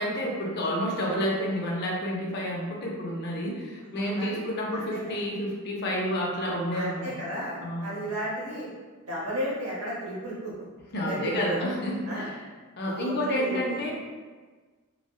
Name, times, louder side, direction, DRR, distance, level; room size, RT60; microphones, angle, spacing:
voice 1, 0.0-7.1 7.6-8.0 10.9-12.3 12.8-13.9, equal, 50° left, -2 dB, 0.5 m, -29 dB
voice 2, 3.8-4.4 4.7-5.2 6.7-8.7 9.0-10.5 11.1-11.6 12.1-12.3 12.8-13.8, right 1 dB, 70° right, -5 dB, 0.9 m, -34 dB
3.3 x 2.0 x 2.3 m, 1.4 s
head